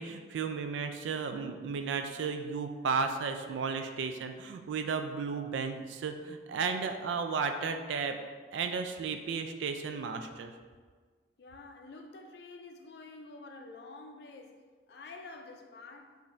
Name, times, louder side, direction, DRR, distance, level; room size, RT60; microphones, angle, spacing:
voice 1, 0.0-8.2 8.5-10.5, right 5 dB, 80° right, 0.3 m, -34 dB
voice 2, 11.4-16.2, left 3 dB, 60° left, 0.4 m, -49 dB
5.3 x 2.6 x 3.2 m
head